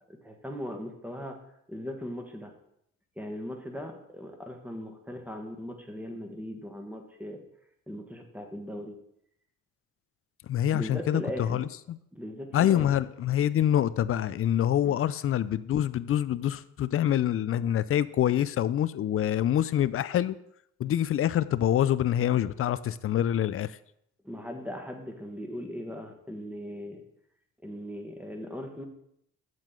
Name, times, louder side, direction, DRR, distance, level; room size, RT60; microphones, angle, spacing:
voice 1, 0.1-1.4 1.7-2.5 3.2-7.4 7.9-9.0 10.7-11.7 12.1-12.9 14.8-15.0 24.2-27.0 27.6-28.8, equal, 5° right, 3 dB, 1.5 m, -39 dB
voice 2, 10.5-12.0 12.5-20.4 20.8-23.7, left 11 dB, 50° left, 16 dB, 0.4 m, -26 dB
7.6 x 7.4 x 3.8 m, 0.73 s
cardioid pair, 90°, 30 cm